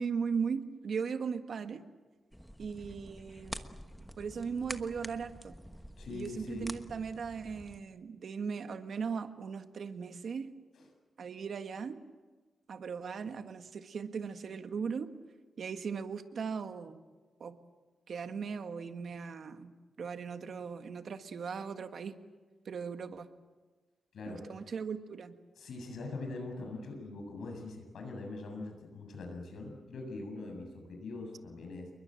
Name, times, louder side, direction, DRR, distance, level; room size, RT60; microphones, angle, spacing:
voice 1, 0.0-1.8 2.6-3.6 4.2-5.6 6.1-10.5 11.2-12.0 12.7-15.1 15.6-17.0 17.4-17.6 18.1-19.7 20.0-22.2 22.6-23.3 24.3-25.4, right 6 dB, 60° right, 8 dB, 1.6 m, -38 dB
sound 1, 2.3-7.8, equal, ahead, 1.2 m, -47 dB
voice 2, 6.0-6.7 10.7-10.8 24.1-24.5 25.6-31.9, left 3 dB, 75° left, 3 dB, 7.3 m, -42 dB
28.5 x 22.5 x 7.7 m, 1.3 s
wide cardioid pair, 130°, 0 cm